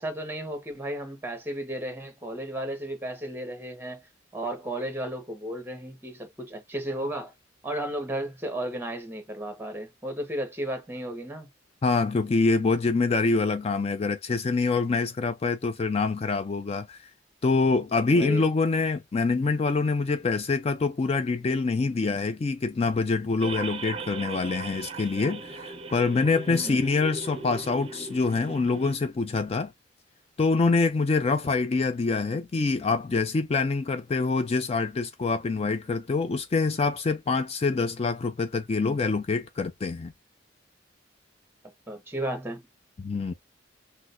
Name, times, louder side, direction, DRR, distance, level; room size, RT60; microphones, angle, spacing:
voice 1, 0.0-4.0 4.3-7.3 7.6-11.5 18.1-18.4 26.5-26.8 41.9-42.6, right 1 dB, 10° right, 1.3 m, -34 dB
voice 2, 11.8-17.1 17.4-29.7 30.4-40.1 43.0-43.3, left 4 dB, 35° left, 0.4 m, -25 dB
sound 1, 23.4-28.9, right 4 dB, 35° right, 0.6 m, -38 dB
6.1 x 2.2 x 2.5 m
head